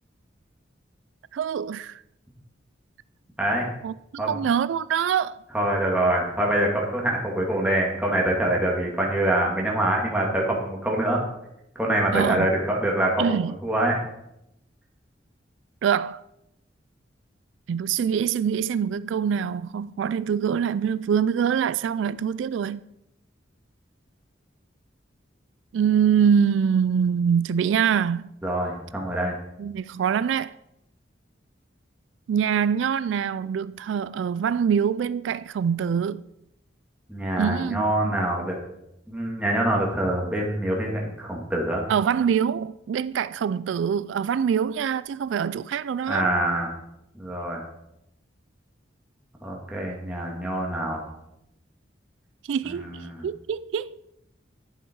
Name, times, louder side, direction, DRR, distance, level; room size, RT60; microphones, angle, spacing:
voice 1, 1.3-2.0 3.8-5.4 12.1-12.5 13.2-13.6 15.8-16.2 17.7-22.8 25.7-28.3 29.6-30.6 32.3-36.2 37.4-38.2 41.9-46.3 52.5-52.9 53.2-54.1, right 7 dB, 80° right, 0.3 m, -24 dB
voice 2, 3.4-3.7 4.2-4.4 5.5-11.2 11.8-14.0 28.4-29.4 37.1-38.6 39.1-41.8 46.1-46.7 47.1-47.6 49.4-51.0 52.7-53.2, right 1 dB, 5° right, 2.4 m, -25 dB
11.5 x 9.2 x 4.7 m
head